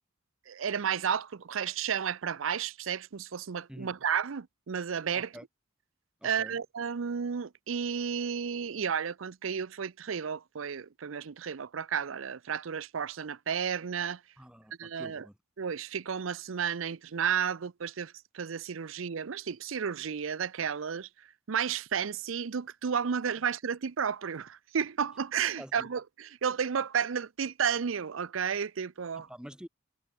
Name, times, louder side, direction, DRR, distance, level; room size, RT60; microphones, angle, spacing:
voice 1, 0.5-5.4 6.2-14.2 14.8-15.3 15.6-21.1 21.5-29.3, right 7 dB, 75° right, 0.6 m, -32 dB
voice 2, 5.1-5.4 6.2-6.6 14.4-15.3 25.6-25.9 29.2-29.7, equal, 5° right, 1.5 m, -47 dB
head